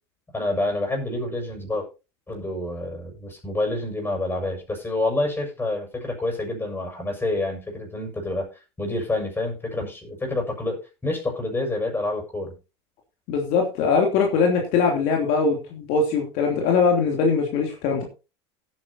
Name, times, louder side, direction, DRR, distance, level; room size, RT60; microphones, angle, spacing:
voice 1, 0.3-1.9 2.3-8.5 8.8-12.6, left 2 dB, 15° left, 2 dB, 6.6 m, -28 dB
voice 2, 13.3-18.0, left 5 dB, 60° left, 1 dB, 3.0 m, -21 dB
17.5 x 9.4 x 2.8 m, 0.30 s
hypercardioid pair, 85°, 14 cm